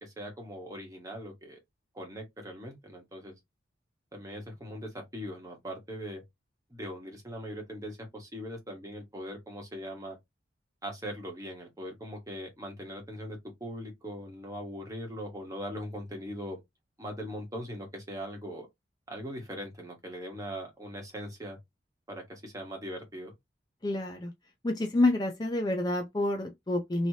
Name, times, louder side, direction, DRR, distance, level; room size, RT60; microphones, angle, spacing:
voice 1, 0.0-1.6 1.9-3.4 4.1-6.2 6.7-10.2 10.8-16.6 17.0-18.7 19.1-21.6 22.1-23.3, equal, 20° right, 1.2 m, -40 dB
voice 2, 23.8-24.3 24.6-27.1, left 2 dB, 20° left, 0.5 m, -28 dB
3.1 x 2.9 x 2.8 m
head